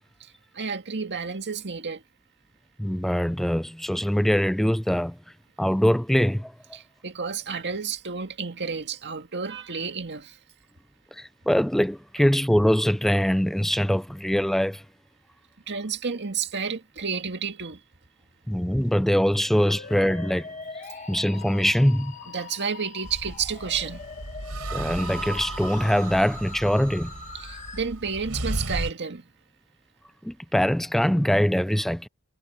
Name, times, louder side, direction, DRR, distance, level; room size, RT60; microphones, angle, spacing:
voice 1, 0.5-2.0 6.7-10.4 15.7-17.8 22.3-24.0 27.3-29.2, right 6 dB, 50° right, 2.0 m, -31 dB
voice 2, 2.8-5.2 5.6-6.5 11.1-14.8 18.5-20.5 21.1-22.2 24.7-27.1 30.2-32.1, equal, ahead, 0.3 m, -23 dB
Musical instrument, 19.4-27.8, left 5 dB, 35° left, 1.7 m, -42 dB
sound 1, 23.0-28.9, right 2 dB, 80° right, 4.7 m, -35 dB
head